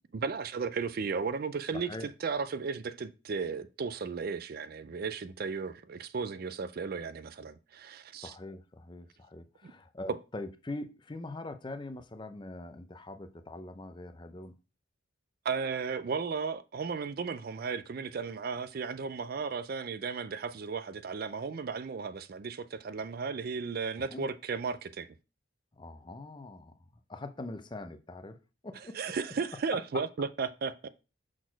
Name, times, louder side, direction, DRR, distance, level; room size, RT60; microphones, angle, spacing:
voice 1, 0.1-1.9 2.2-8.3 9.6-9.7 15.4-25.1 28.9-30.9, right 5 dB, 45° right, 0.4 m, -35 dB
voice 2, 1.7-2.1 8.2-14.5 24.1-24.3 25.7-26.7 27.1-28.4 28.6-29.1 29.7-30.0, left 2 dB, 20° left, 0.5 m, -42 dB
6.1 x 4.2 x 4.5 m
head